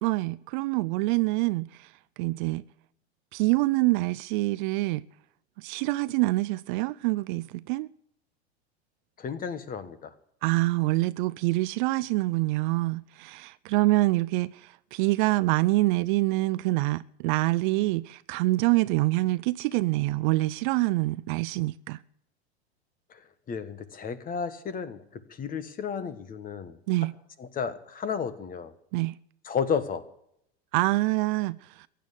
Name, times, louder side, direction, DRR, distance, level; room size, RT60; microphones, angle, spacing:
voice 1, 0.0-1.9 2.2-2.6 3.3-5.1 5.6-7.9 10.4-22.0 26.9-27.1 28.9-29.2 30.7-31.9, right 20 dB, 50° right, 0.5 m, -26 dB
voice 2, 9.2-10.1 23.1-23.2 23.5-26.8 27.4-28.7 29.4-30.0, left 6 dB, 25° left, 1.5 m, -32 dB
15.5 x 9.5 x 8.2 m
hypercardioid pair, 105°, 32 cm